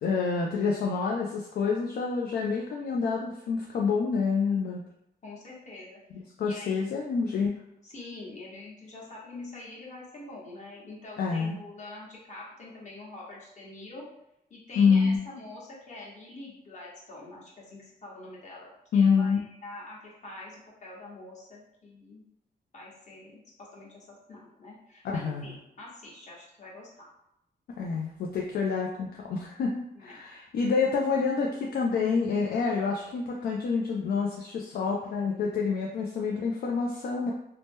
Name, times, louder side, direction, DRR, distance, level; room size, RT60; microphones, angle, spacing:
voice 1, 0.0-4.8 6.1-7.5 11.2-11.6 14.8-15.2 18.9-19.4 25.0-25.5 27.8-37.3, left 5 dB, 65° left, -1 dB, 0.4 m, -27 dB
voice 2, 5.2-6.0 6.4-7.0 7.8-14.1 14.5-22.2 22.7-27.1 29.9-30.1, left 2 dB, 45° left, -5 dB, 1.0 m, -45 dB
2.8 x 2.1 x 3.4 m, 0.82 s
wide cardioid pair, 125°, 17 cm